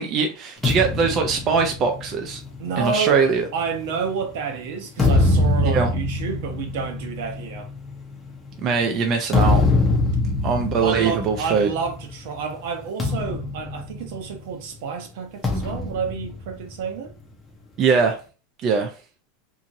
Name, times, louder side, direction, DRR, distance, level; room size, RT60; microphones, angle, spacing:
voice 1, 0.0-2.4 2.8-3.4 5.6-5.9 8.6-9.6 10.4-11.7 17.8-18.2 18.6-18.9, right 5 dB, 30° right, 0.4 m, -21 dB
sound 1, 0.6-4.2 4.7-12.2 12.4-12.6 13.0-14.6 15.4-17.2, left 2 dB, 15° left, 0.7 m, -24 dB
voice 2, 2.6-3.2 3.5-7.7 10.8-17.1, right 5 dB, 65° right, 0.8 m, -29 dB
2.8 x 2.6 x 2.5 m
supercardioid pair, 160°, 0 cm